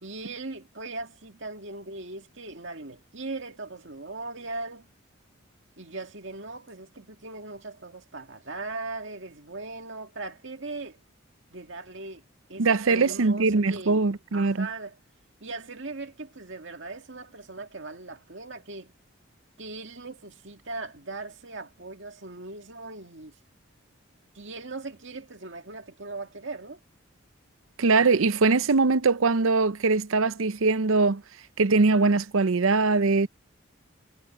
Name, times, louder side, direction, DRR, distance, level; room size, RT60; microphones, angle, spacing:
voice 1, 0.0-4.9 5.8-11.0 11.5-12.2 12.5-14.0 14.3-15.0 15.4-18.9 19.6-23.4 24.3-26.8, right 3 dB, 65° right, 2.1 m, -39 dB
voice 2, 12.6-14.7 27.8-31.2 31.6-33.3, right 3 dB, 80° right, 0.7 m, -22 dB
head